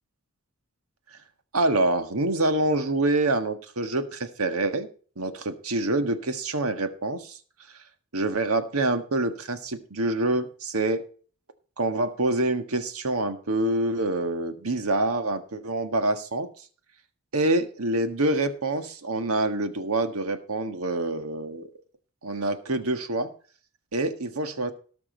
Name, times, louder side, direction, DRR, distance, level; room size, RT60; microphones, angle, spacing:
voice 1, 1.5-4.9 5.2-7.4 8.1-11.0 11.8-16.5 17.3-21.7 22.2-23.3 23.9-24.7, right 2 dB, 80° right, 8 dB, 1.6 m, -26 dB
18.5 x 6.1 x 4.5 m, 0.41 s
head